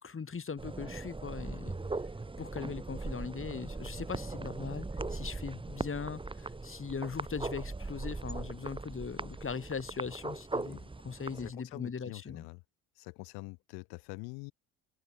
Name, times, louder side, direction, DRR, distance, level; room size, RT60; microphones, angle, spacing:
voice 1, 0.0-1.8 2.4-10.8 11.0-12.5, left 5 dB, 35° left, 5.2 m, -40 dB
sound 1, 0.6-11.5, right 3 dB, 15° right, 1.4 m, -39 dB
voice 2, 11.3-12.6 13.0-14.5, left 31 dB, 75° left, 4.7 m, -45 dB
hypercardioid pair, 60°, 38 cm